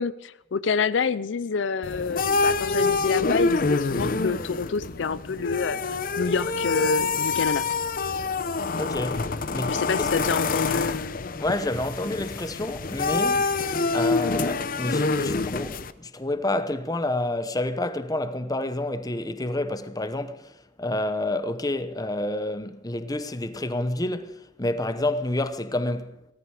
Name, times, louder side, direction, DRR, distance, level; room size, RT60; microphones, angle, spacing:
voice 1, 0.0-7.7 9.7-11.1, left 5 dB, 80° left, 0.5 m, -28 dB
sound 1, 1.8-15.9, left 3 dB, 50° left, 0.8 m, -26 dB
voice 2, 8.8-9.2 9.5-10.2 11.4-13.5 13.9-20.5 20.8-26.2, left 1 dB, 20° left, 1.0 m, -29 dB
17.5 x 14.0 x 4.9 m
head